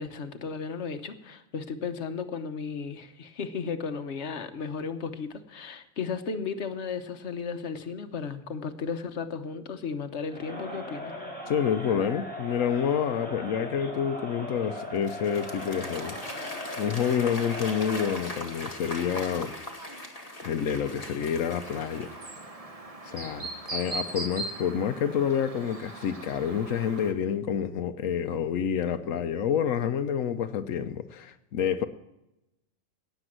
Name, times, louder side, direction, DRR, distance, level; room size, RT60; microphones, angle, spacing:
voice 1, 0.0-11.1, left 5 dB, 60° left, 1.3 m, -35 dB
Crowd, 10.3-18.3, left 1 dB, 5° left, 4.2 m, -39 dB
voice 2, 11.5-16.2 16.8-19.5 20.4-22.1 23.0-31.9, left 8 dB, 90° left, 1.1 m, -28 dB
Applause / Crowd, 14.8-22.6, left 1 dB, 30° left, 2.0 m, -40 dB
Chirp tweet, 21.6-27.1, right 2 dB, 30° right, 1.4 m, -39 dB
18.0 x 7.0 x 7.5 m
omnidirectional pair, 1.3 m